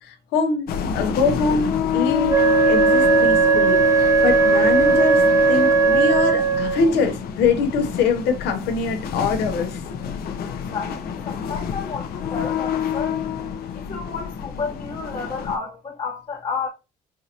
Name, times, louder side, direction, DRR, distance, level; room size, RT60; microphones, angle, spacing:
voice 1, 0.0-0.7 0.9-9.8, left 4 dB, 85° left, 0.9 m, -23 dB
sound 1, 0.7-15.6, left 8 dB, 65° left, 0.6 m, -27 dB
Wind instrument woodwind instrument, 2.3-6.9, right 5 dB, 20° right, 0.4 m, -17 dB
voice 2, 10.7-13.2 13.7-16.7, left 5 dB, 35° left, 1.0 m, -31 dB
4.7 x 2.5 x 2.8 m
cardioid pair, 110°, 17 cm